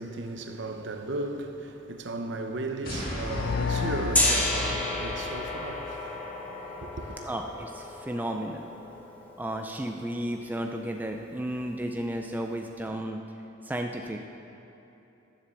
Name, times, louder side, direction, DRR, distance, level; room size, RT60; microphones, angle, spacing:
voice 1, 0.0-7.2, right 2 dB, 60° right, 0.8 m, -36 dB
sound 1, 2.8-5.4, equal, 45° left, 2.2 m, -36 dB
sound 2, 3.2-6.0, left 5 dB, 70° left, 0.4 m, -33 dB
Gong, 4.1-10.0, left 1 dB, 10° left, 1.3 m, -32 dB
voice 2, 7.2-8.7 9.4-13.2 13.6-14.3, right 1 dB, 10° right, 0.4 m, -33 dB
10.5 x 7.4 x 6.9 m
head